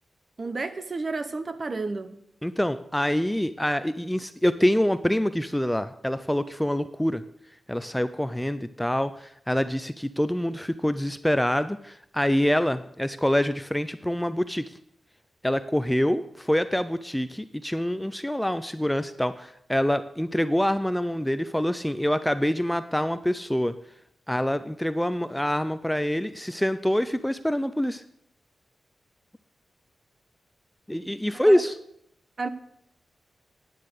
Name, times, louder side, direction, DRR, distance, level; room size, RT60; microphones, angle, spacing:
voice 1, 0.4-2.2 31.4-31.6 32.4-32.5, right 3 dB, 40° right, 0.9 m, -31 dB
voice 2, 2.4-7.2 7.7-14.6 15.4-23.7 24.3-28.0 30.9-31.8, equal, 5° left, 0.4 m, -25 dB
9.7 x 9.3 x 6.6 m
wide cardioid pair, 110°, 0 cm